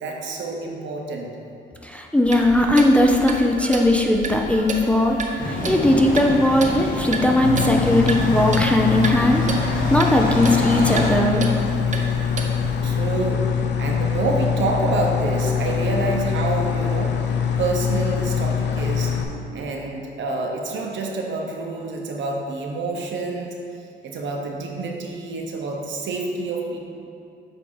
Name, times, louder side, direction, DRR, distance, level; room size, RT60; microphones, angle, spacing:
voice 1, 0.0-1.3 12.8-13.5 13.8-17.2 17.6-19.1 19.5-23.6 24.0-26.8, right 2 dB, 70° right, 1 dB, 0.9 m, -27 dB
voice 2, 1.8-11.5, left 1 dB, 5° left, 1 dB, 0.5 m, -19 dB
Clock, 2.2-12.8, right 3 dB, 40° right, 0.8 m, -32 dB
sound 1, 5.4-11.1, left 1 dB, 45° left, 1.5 m, -28 dB
sound 2, 7.4-19.2, left 7 dB, 60° left, 0.6 m, -24 dB
8.1 x 2.8 x 5.5 m, 2.6 s
cardioid pair, 90°, 20 cm